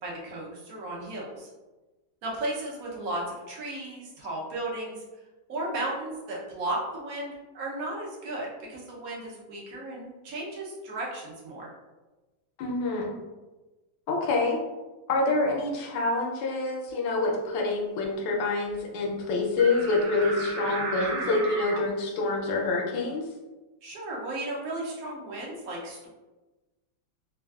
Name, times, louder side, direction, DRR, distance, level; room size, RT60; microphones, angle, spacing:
voice 1, 0.0-1.5 2.2-5.0 5.5-11.7 23.8-26.1, right 1 dB, 65° right, -4 dB, 0.9 m, -35 dB
voice 2, 12.6-13.1 14.1-14.6 15.1-23.2, left 3 dB, 75° left, 0 dB, 1.2 m, -26 dB
sound 1, 19.6-21.8, right 3 dB, 90° right, 1.4 m, -34 dB
3.3 x 2.3 x 2.3 m, 1.1 s
omnidirectional pair, 2.2 m